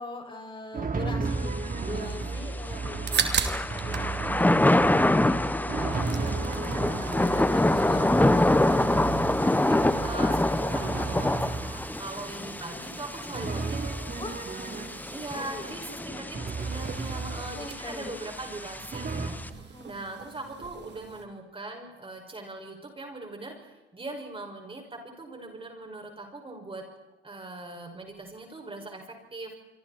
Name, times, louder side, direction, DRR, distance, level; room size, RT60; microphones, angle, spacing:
voice 1, 0.0-6.5 7.2-8.7 12.1-12.9 14.2-14.4 15.3-16.2 17.1-18.3 19.6-20.0, left 2 dB, 25° left, 2 dB, 6.5 m, -42 dB
Drum, 0.7-12.1 13.3-15.3 16.3-17.8 18.9-19.3, right 4 dB, 45° right, 3.4 m, -34 dB
Thunder / Rain, 1.3-19.5, left 1 dB, 10° left, 1.2 m, -27 dB
voice 2, 2.3-2.6 9.4-13.8 15.1-26.9 27.2-29.6, right 2 dB, 25° right, 2 dB, 6.2 m, -40 dB
sound 1, 2.8-4.1 4.4-5.4 5.7-21.2, right 7 dB, 60° right, 2.7 m, -39 dB
27.0 x 25.0 x 4.4 m, 1.1 s
cardioid pair, 90°, 20 cm